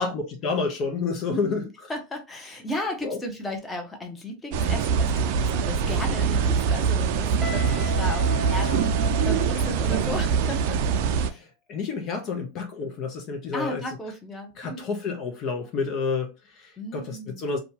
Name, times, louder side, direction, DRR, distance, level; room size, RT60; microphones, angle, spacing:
voice 1, 0.0-1.7 2.8-3.2 8.6-8.8 9.2-9.4 11.3-14.0 14.6-17.6, left 4 dB, 45° left, 0.6 m, -30 dB
voice 2, 1.3-1.6 1.9-10.8 11.2-11.4 13.5-14.9 16.8-17.5, left 1 dB, 15° left, 0.9 m, -35 dB
sound 1, 4.5-11.3, right 6 dB, 60° right, 0.4 m, -23 dB
Guitar, 7.4-10.2, left 2 dB, ahead, 0.5 m, -36 dB
2.7 x 2.3 x 2.8 m
hypercardioid pair, 105°, 0 cm